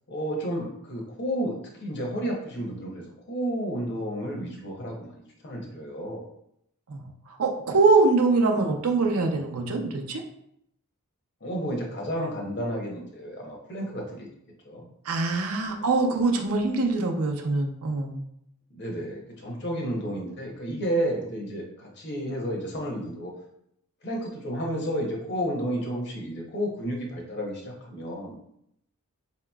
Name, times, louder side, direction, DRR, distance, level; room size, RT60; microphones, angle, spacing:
voice 1, 0.1-5.1 5.4-6.3 11.4-14.3 14.6-14.9 18.7-23.3 24.0-28.4, equal, 50° left, 0 dB, 0.8 m, -31 dB
voice 2, 6.9-10.2 15.0-18.2, right 3 dB, 70° right, 3 dB, 0.5 m, -23 dB
4.6 x 2.9 x 2.3 m, 0.74 s
head